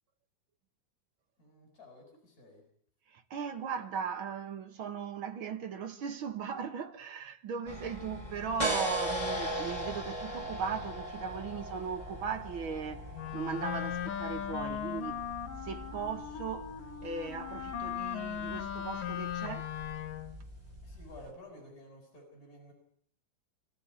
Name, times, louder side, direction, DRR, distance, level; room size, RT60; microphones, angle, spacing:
voice 1, 1.4-2.7 20.8-22.7, left 1 dB, 20° left, 7.6 m, -52 dB
voice 2, 3.1-15.2 15.6-19.7, right 6 dB, 60° right, 1.3 m, -38 dB
sound 1, 7.7-21.3, equal, 10° right, 4.8 m, -40 dB
Wind instrument woodwind instrument, 13.1-20.4, left 9 dB, 65° left, 3.0 m, -38 dB
26.5 x 15.5 x 9.9 m
omnidirectional pair, 4.4 m